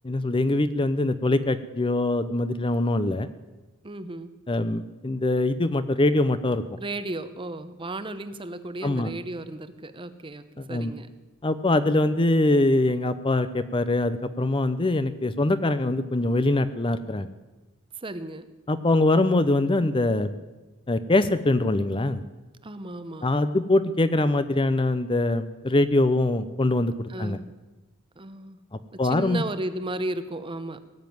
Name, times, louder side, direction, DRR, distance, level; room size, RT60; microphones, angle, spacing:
voice 1, 0.0-3.3 4.5-6.6 8.8-9.1 10.6-10.9 11.4-17.3 18.7-20.3 20.9-22.2 23.2-27.4 29.0-29.4, left 2 dB, 25° left, 12 dB, 0.6 m, -23 dB
voice 2, 3.8-4.3 6.8-11.1 18.0-18.5 22.6-23.3 27.1-27.5 28.2-28.6 28.9-30.8, right 2 dB, 25° right, 12 dB, 0.8 m, -34 dB
18.5 x 7.3 x 9.4 m, 1.1 s
head